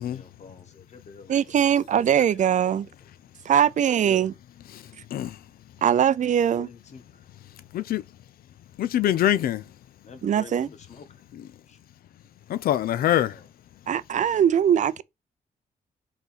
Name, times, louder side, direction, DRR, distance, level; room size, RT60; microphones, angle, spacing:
voice 1, 0.0-1.5 1.9-3.1 4.0-4.4 6.5-7.3 10.0-11.2 11.7-11.8 13.3-13.5, left 5 dB, 50° left, 1.5 m, -47 dB
voice 2, 1.3-2.9 3.4-4.3 5.8-6.7 10.2-10.7 13.9-15.0, right 9 dB, 55° right, 0.5 m, -21 dB
voice 3, 8.8-9.6 12.5-13.4, left 12 dB, 85° left, 0.5 m, -24 dB
5.9 x 4.0 x 5.8 m
cardioid pair, 110°, 15 cm